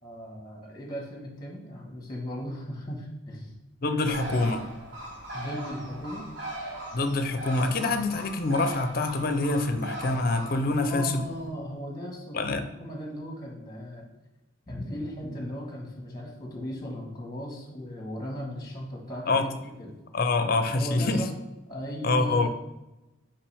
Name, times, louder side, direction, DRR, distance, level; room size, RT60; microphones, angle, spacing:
voice 1, 0.0-3.6 5.3-6.3 10.8-14.0 14.7-19.3 19.8-19.9 20.4-21.3 21.7-22.5, equal, 20° left, -1 dB, 1.3 m, -37 dB
voice 2, 3.8-4.7 6.9-11.2 12.3-12.6 19.3-19.5 20.1-21.3 22.0-22.5, left 2 dB, 45° left, 8 dB, 0.5 m, -25 dB
Bird, 4.1-11.5, right 1 dB, 65° right, 1.2 m, -39 dB
5.7 x 5.1 x 3.4 m, 0.99 s
head